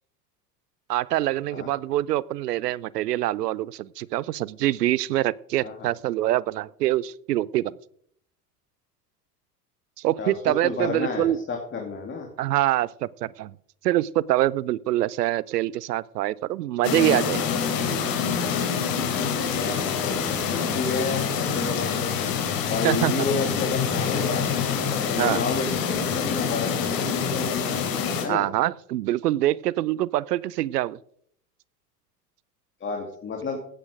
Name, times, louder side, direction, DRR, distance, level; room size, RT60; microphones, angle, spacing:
voice 1, 0.9-7.7 10.0-11.4 12.4-13.5 13.8-17.4 22.8-23.3 25.2-25.4 28.3-31.0, right 14 dB, 75° right, 23 dB, 0.7 m, -25 dB
voice 2, 10.2-12.3 19.5-22.1 22.7-24.4 24.9-27.6 28.2-28.4 32.8-33.6, left 4 dB, 25° left, 2 dB, 2.6 m, -31 dB
sound 1, 16.8-28.3, left 6 dB, 45° left, 3.2 m, -26 dB
16.5 x 8.9 x 5.0 m, 0.64 s
hypercardioid pair, 85°, 48 cm